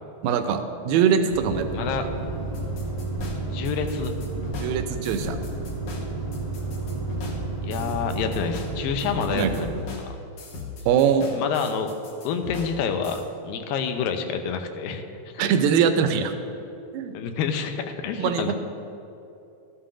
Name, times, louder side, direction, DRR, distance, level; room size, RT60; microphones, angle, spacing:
voice 1, 0.2-1.9 4.6-5.4 9.3-9.5 10.9-11.3 15.4-16.3 16.9-17.1 18.2-18.5, right 7 dB, 85° right, 7 dB, 2.3 m, -22 dB
sound 1, 1.3-9.7, right 3 dB, 25° left, 0.9 m, -31 dB
voice 2, 1.7-2.4 3.5-4.2 7.6-9.7 10.0-10.1 11.3-12.0 12.2-15.0 15.3-15.5 17.1-18.5, left 6 dB, 85° left, 6 dB, 2.3 m, -28 dB
sound 2, 2.5-13.2, left 4 dB, 60° left, 2.1 m, -38 dB
13.5 x 11.5 x 2.5 m, 2.8 s
omnidirectional pair, 4.1 m